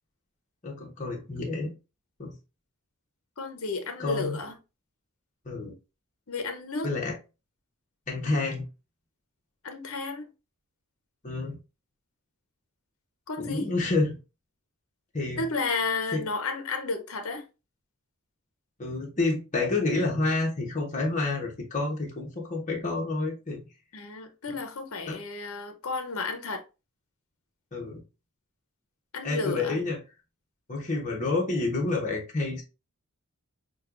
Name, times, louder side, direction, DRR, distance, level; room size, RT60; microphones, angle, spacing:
voice 1, 0.6-1.7 2.2-2.4 4.0-4.4 5.4-5.7 6.8-7.2 8.1-8.6 11.2-11.6 13.4-14.2 15.1-15.5 16.1-16.3 18.8-23.6 25.1-25.2 27.7-28.0 29.2-30.0 30.7-32.6, left 3 dB, 35° left, 1.1 m, -29 dB
voice 2, 3.4-4.6 6.3-6.9 9.6-10.3 13.3-13.7 15.4-17.4 23.9-26.6 29.1-29.8, left 3 dB, 65° left, 0.8 m, -32 dB
6.3 x 2.3 x 2.5 m
head